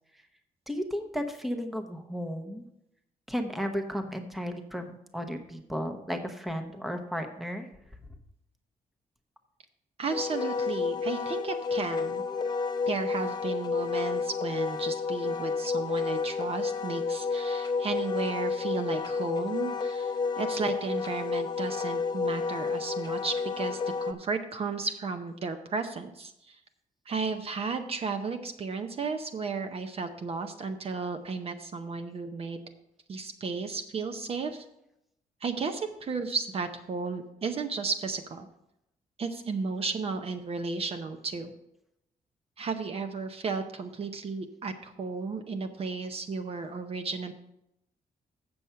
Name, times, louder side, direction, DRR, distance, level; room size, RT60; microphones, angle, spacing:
voice 1, 0.7-2.6 3.3-7.7, equal, ahead, 5 dB, 0.8 m, -34 dB
voice 2, 10.0-12.2 12.9-26.6 27.1-32.7 33.1-34.7 35.4-38.5 39.2-41.5 42.6-47.3, right 4 dB, 40° right, 7 dB, 0.6 m, -34 dB
Wind instrument woodwind instrument, 10.1-24.1, left 5 dB, 30° left, 0.6 m, -30 dB
7.9 x 7.0 x 5.5 m, 0.82 s
wide cardioid pair, 160°, 15 cm